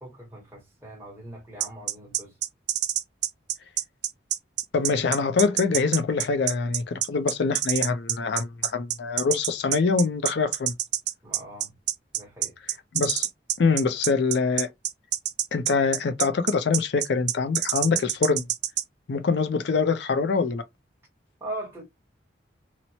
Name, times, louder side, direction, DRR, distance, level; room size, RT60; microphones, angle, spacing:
voice 1, 0.0-2.4 11.2-11.7 12.1-12.5 21.4-21.8, right 1 dB, 15° right, 1.0 m, -40 dB
sound 1, 1.6-18.8, right 12 dB, 65° right, 0.4 m, -26 dB
voice 2, 4.7-10.7 12.9-13.3 13.6-14.7 15.5-18.5 19.1-20.6, left 4 dB, 70° left, 0.4 m, -24 dB
2.9 x 2.0 x 2.7 m
head